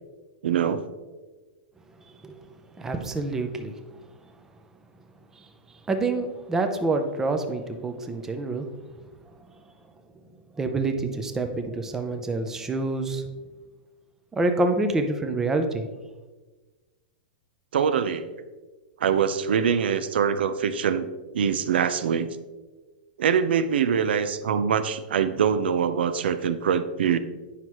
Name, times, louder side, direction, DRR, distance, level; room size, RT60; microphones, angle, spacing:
voice 1, 0.4-0.8 17.7-18.3 19.0-21.1 21.3-22.3 23.2-27.2, right 7 dB, 90° right, 12 dB, 0.6 m, -23 dB
voice 2, 2.8-3.7 5.3-5.5 5.9-8.7 10.6-13.2 14.3-15.8, right 2 dB, 10° right, 6 dB, 0.5 m, -27 dB
9.5 x 5.8 x 3.1 m, 1.2 s
supercardioid pair, 165°, 5 cm